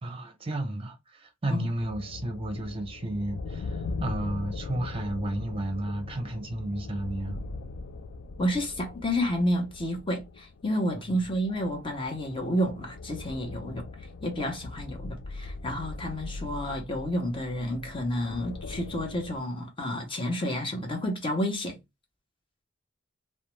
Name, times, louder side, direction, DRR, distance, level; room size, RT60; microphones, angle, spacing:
voice 1, 0.0-7.4, right 1 dB, 30° right, 0.6 m, -32 dB
sound 1, 1.8-19.4, left 3 dB, 75° left, 0.3 m, -40 dB
voice 2, 8.4-13.8 14.2-21.8, equal, 25° left, 0.8 m, -30 dB
2.5 x 2.1 x 3.0 m
head